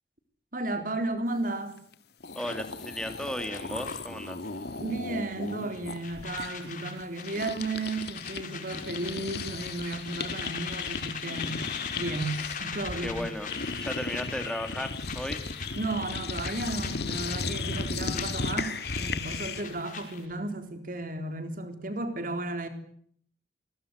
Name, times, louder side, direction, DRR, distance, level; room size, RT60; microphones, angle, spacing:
voice 1, 0.5-1.8 4.8-11.6 11.9-13.3 15.7-22.7, right 2 dB, 50° right, 3.9 m, -34 dB
sound 1, 1.9-2.0 2.2-8.4 8.7-19.8, left 4 dB, 65° left, 2.0 m, -36 dB
voice 2, 2.3-4.4 13.0-15.4, left 1 dB, 5° left, 2.8 m, -35 dB
sound 2, 2.4-4.6 4.9-5.1 5.4-20.3, left 6 dB, 50° left, 5.5 m, -42 dB
27.5 x 22.0 x 8.2 m
head